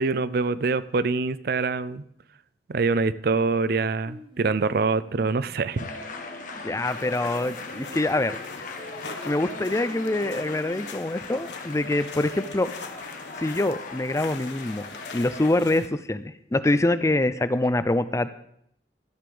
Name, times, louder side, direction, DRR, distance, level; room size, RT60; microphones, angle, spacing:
voice 1, 0.0-2.0 2.7-5.9, right 4 dB, 60° right, 16 dB, 0.5 m, -25 dB
Singing, 4.1-11.3, right 1 dB, 30° right, 1.1 m, -48 dB
sound 1, 5.8-15.5, left 3 dB, 50° left, 1.4 m, -39 dB
voice 2, 6.6-8.4 9.2-12.7 13.4-14.9 15.1-18.3, left 2 dB, 15° left, 13 dB, 0.4 m, -25 dB
sound 2, 6.9-15.9, left 4 dB, 85° left, 1.1 m, -43 dB
13.5 x 5.2 x 7.7 m, 0.72 s
head